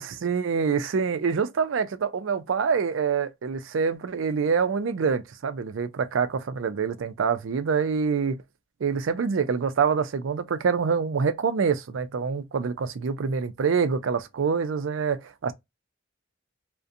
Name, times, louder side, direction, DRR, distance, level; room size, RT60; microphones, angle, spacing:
voice 1, 0.2-8.4 8.8-15.5, right 5 dB, 90° right, 0.4 m, -26 dB
2.5 x 2.1 x 2.6 m
head